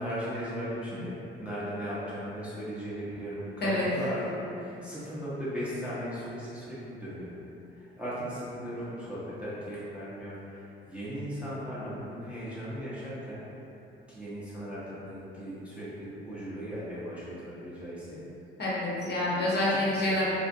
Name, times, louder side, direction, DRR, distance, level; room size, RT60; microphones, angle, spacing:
voice 1, 0.0-7.3 7.8-10.6 10.9-13.4 14.1-18.2 19.7-20.1, equal, 5° right, -11 dB, 0.6 m, -37 dB
voice 2, 18.6-20.2, left 1 dB, 35° left, -8 dB, 0.7 m, -27 dB
2.4 x 2.1 x 2.5 m, 2.9 s
figure-of-eight pair, 50°, 30 cm